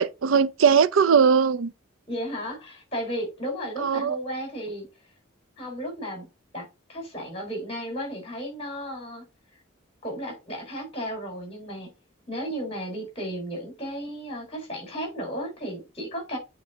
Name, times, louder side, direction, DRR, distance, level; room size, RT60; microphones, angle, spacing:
voice 1, 0.0-1.7 3.8-4.2, right 6 dB, 85° right, 0.5 m, -20 dB
voice 2, 2.1-4.9 5.6-6.3 6.5-9.2 10.0-11.9 12.3-16.4, equal, 30° left, 4.3 m, -34 dB
8.5 x 4.6 x 4.0 m
head